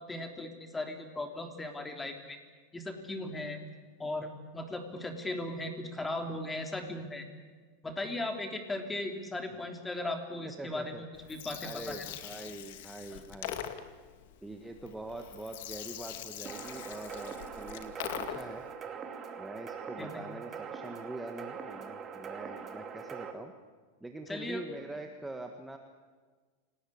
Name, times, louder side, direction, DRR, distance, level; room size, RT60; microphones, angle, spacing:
voice 1, 0.0-2.4 2.7-3.6 4.0-7.3 7.8-12.0 13.1-13.2 20.0-20.2 24.3-24.6, left 2 dB, 10° left, 5 dB, 3.3 m, -37 dB
voice 2, 10.6-11.0 11.6-13.6 14.4-18.7 19.4-23.5 24.0-25.8, right 2 dB, 5° right, 4 dB, 1.5 m, -44 dB
Gurgling, 11.1-18.7, left 11 dB, 70° left, 2.2 m, -43 dB
sound 1, 16.5-23.3, right 6 dB, 30° right, 2.6 m, -42 dB
28.0 x 19.0 x 8.7 m, 1.5 s
supercardioid pair, 135°, 0 cm